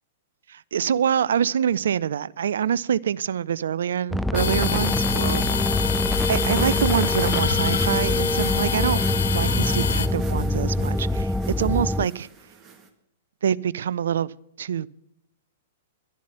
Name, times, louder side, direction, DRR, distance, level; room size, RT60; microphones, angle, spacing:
voice 1, 0.5-5.5 6.3-9.0 9.3-12.3 13.4-14.3 14.6-14.9, right 8 dB, 65° right, 0.4 m, -25 dB
sound 1, 4.1-12.1, left 1 dB, ahead, 0.4 m, -24 dB
sound 2, 4.3-10.1, left 9 dB, 65° left, 0.7 m, -26 dB
sound 3, 6.1-12.9, right 5 dB, 20° right, 1.9 m, -42 dB
11.5 x 11.0 x 5.7 m
figure-of-eight pair, 105°, 0 cm